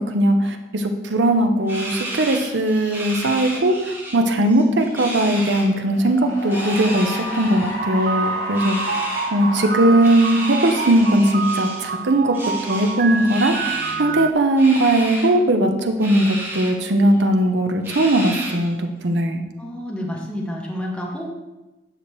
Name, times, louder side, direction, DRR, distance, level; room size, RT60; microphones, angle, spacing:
voice 1, 0.0-9.0 9.3-12.4 12.7-19.4, right 1 dB, 80° right, 5 dB, 0.8 m, -19 dB
sound 1, 1.7-4.2 4.4-5.7 6.4-7.7 8.5-9.3 10.0-11.9 12.3-14.0 14.6-15.3 16.0-16.7 17.1-17.2 17.8-18.7, right 1 dB, 15° right, 1.7 m, -32 dB
Cheering / Applause, 5.8-12.5, left 1 dB, 25° left, 2.6 m, -32 dB
sound 2, 7.8-14.3, right 6 dB, 50° right, 0.4 m, -28 dB
voice 2, 19.6-21.3, left 1 dB, 5° left, -2 dB, 1.0 m, -29 dB
10.0 x 6.2 x 3.1 m, 1.1 s
head